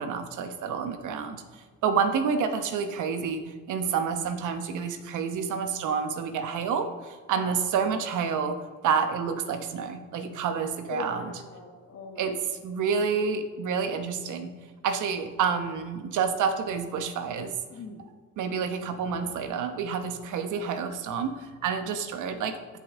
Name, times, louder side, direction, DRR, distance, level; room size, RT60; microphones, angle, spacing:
voice 1, 0.0-3.4 3.7-11.4 12.2-14.5 14.8-17.5 18.4-22.6, right 6 dB, 80° right, 8 dB, 1.1 m, -29 dB
voice 2, 10.9-12.4 17.7-18.1, left 3 dB, 55° left, -1 dB, 1.3 m, -40 dB
15.5 x 5.4 x 3.7 m, 1.5 s
cardioid pair, 90°, 30 cm